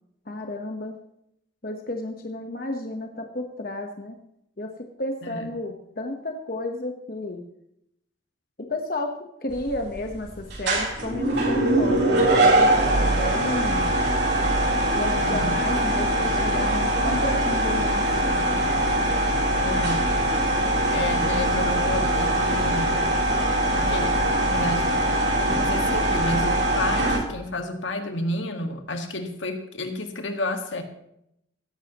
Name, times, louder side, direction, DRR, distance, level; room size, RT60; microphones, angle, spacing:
voice 1, 0.3-0.9 1.6-4.2 4.6-4.7 5.0-7.4 8.7-9.1 9.4-13.9 14.9-18.6, left 1 dB, 45° left, 3 dB, 1.1 m, -32 dB
voice 2, 5.2-5.6 15.1-15.6 19.6-20.1 20.9-23.1 23.7-25.0 25.4-30.8, left 1 dB, 75° left, 5 dB, 1.7 m, -31 dB
sound 1, 9.5-27.2, right 1 dB, 60° right, 3.7 m, -22 dB
16.5 x 13.5 x 3.0 m, 0.78 s
head